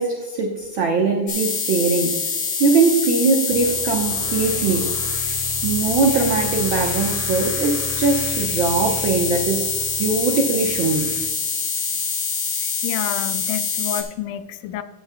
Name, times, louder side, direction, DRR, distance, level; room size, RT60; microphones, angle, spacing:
voice 1, 0.0-2.2 2.6-4.9 5.6-9.7 10.0-11.1, right 4 dB, 90° right, 1 dB, 1.0 m, -21 dB
sound 1, 1.3-14.0, left 5 dB, 45° left, 2.0 m, -25 dB
sound 2, 3.5-11.3, left 4 dB, 70° left, 2.4 m, -35 dB
voice 2, 12.6-14.8, left 10 dB, 85° left, 11 dB, 2.2 m, -29 dB
17.5 x 7.8 x 2.2 m, 1.3 s
omnidirectional pair, 3.7 m